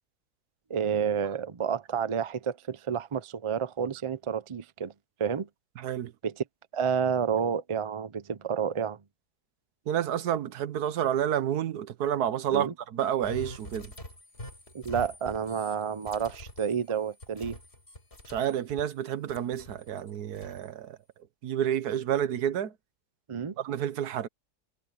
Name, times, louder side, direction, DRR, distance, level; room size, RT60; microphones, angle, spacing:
voice 1, 0.7-4.9 5.2-5.5 6.2-6.4 6.7-9.0 12.5-12.7 14.7-17.6 23.3-23.6, right 7 dB, 55° right, 0.3 m, -30 dB
voice 2, 5.8-6.1 9.9-13.9 18.3-21.0 21.4-22.7 23.6-24.3, right 10 dB, 75° right, 1.4 m, -29 dB
sound 1, 13.2-19.0 19.3-20.7, left 1 dB, 40° left, 5.3 m, -45 dB
omnidirectional pair, 1.7 m